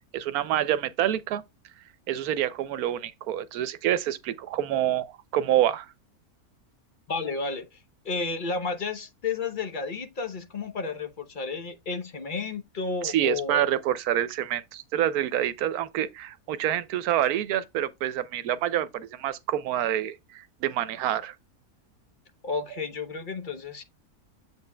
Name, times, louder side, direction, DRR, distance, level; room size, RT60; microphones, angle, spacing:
voice 1, 0.1-1.4 2.1-5.9 13.0-21.3, right 11 dB, 80° right, 1.1 m, -27 dB
voice 2, 7.1-7.8 8.0-13.7 22.4-23.8, left 4 dB, 45° left, 0.8 m, -32 dB
8.0 x 7.5 x 2.2 m
omnidirectional pair, 1.6 m